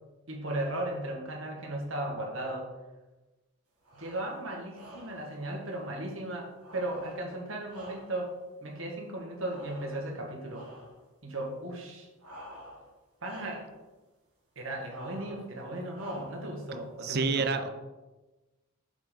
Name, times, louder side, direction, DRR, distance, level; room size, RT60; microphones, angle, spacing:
voice 1, 0.3-2.7 4.0-8.3 8.6-10.7 11.2-12.1 13.2-13.7 14.5-17.5, right 1 dB, 60° right, 0 dB, 1.5 m, -36 dB
sound 1, 3.8-4.3 4.7-5.3 6.6-8.4 9.5-10.2 10.5-11.0 12.2-12.9 13.2-13.7 14.9-15.5 15.9-16.5, equal, 90° right, 2.2 m, -49 dB
voice 2, 17.0-17.7, right 4 dB, 45° right, 8 dB, 0.5 m, -28 dB
7.3 x 5.3 x 3.7 m, 1.1 s
head